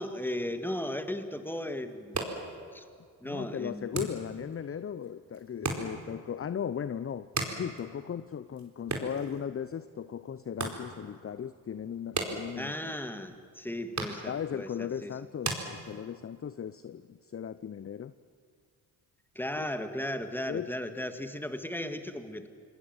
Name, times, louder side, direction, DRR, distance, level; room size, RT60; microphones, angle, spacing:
voice 1, 0.0-2.2 2.7-2.9 3.2-4.1 12.6-15.2 19.4-22.5, left 1 dB, 5° left, 8 dB, 2.1 m, -36 dB
sound 1, 1.9-16.4, right 2 dB, 35° right, 4.6 m, -40 dB
voice 2, 3.2-7.3 7.5-12.9 14.3-18.1 19.6-19.7 20.5-20.7, left 8 dB, 30° left, 15 dB, 0.7 m, -37 dB
27.0 x 19.5 x 7.6 m, 2.1 s
hypercardioid pair, 45°, 49 cm